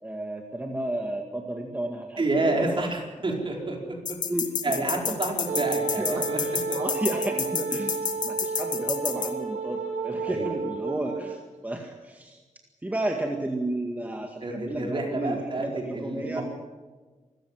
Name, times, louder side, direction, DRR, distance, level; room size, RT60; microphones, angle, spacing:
voice 1, 0.0-2.9 3.9-4.0 4.3-4.8 5.1-5.2 5.6-8.0 8.2-12.4 12.8-16.4, right 1 dB, 10° right, 2 dB, 2.0 m, -32 dB
voice 2, 2.2-3.8 4.6-6.4 6.7-6.8 10.3-10.5 14.4-16.4, right 2 dB, 40° right, 0 dB, 4.7 m, -29 dB
sound 1, 4.1-9.3, left 7 dB, 80° left, 1.8 m, -29 dB
Wind instrument woodwind instrument, 5.5-11.4, right 4 dB, 85° right, 4.0 m, -31 dB
25.5 x 14.5 x 7.7 m, 1.3 s
wide cardioid pair, 125°, 13 cm